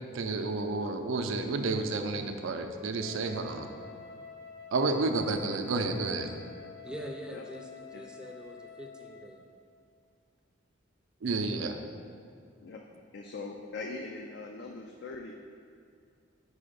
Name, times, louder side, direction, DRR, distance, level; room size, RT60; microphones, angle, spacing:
voice 1, 0.1-3.7 4.7-6.3 11.2-11.8, right 3 dB, 80° right, 6 dB, 0.5 m, -30 dB
Wind instrument woodwind instrument, 3.0-9.4, left 6 dB, 75° left, 0.8 m, -49 dB
voice 2, 6.8-9.4, equal, 5° right, 1 dB, 0.4 m, -44 dB
voice 3, 13.1-15.3, left 3 dB, 60° left, 2 dB, 0.4 m, -41 dB
4.9 x 4.6 x 5.1 m, 2.3 s
head